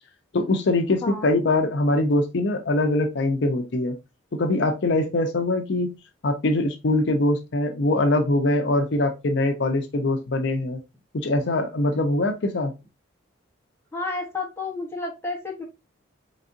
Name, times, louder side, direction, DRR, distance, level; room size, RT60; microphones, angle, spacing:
voice 1, 0.3-3.9 4.3-5.9 6.2-10.8 11.1-12.7, left 2 dB, 60° left, 5 dB, 0.5 m, -23 dB
voice 2, 13.9-15.6, left 3 dB, 10° left, -1 dB, 0.9 m, -31 dB
4.0 x 3.5 x 2.4 m, 0.25 s
head